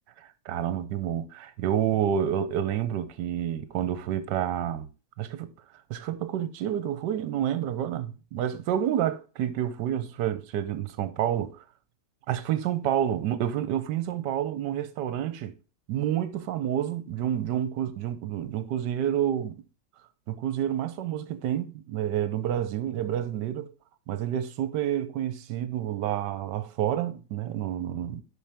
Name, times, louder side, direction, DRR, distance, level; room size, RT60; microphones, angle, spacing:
voice 1, 0.2-4.9 5.2-5.5 5.9-11.6 12.3-15.5 15.9-19.6 20.3-23.7 24.1-28.2, right 10 dB, 70° right, 1.3 m, -29 dB
11.0 x 4.4 x 3.4 m
omnidirectional pair, 2.1 m